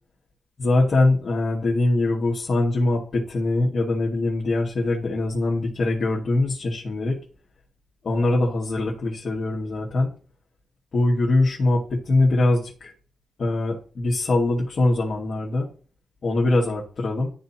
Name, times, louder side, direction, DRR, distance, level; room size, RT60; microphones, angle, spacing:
voice 1, 0.6-7.2 8.0-10.1 10.9-12.9 13.4-15.7 16.2-17.3, left 2 dB, 55° left, -5 dB, 2.1 m, -22 dB
12.5 x 4.2 x 3.0 m, 0.39 s
cardioid pair, 95°, 0 cm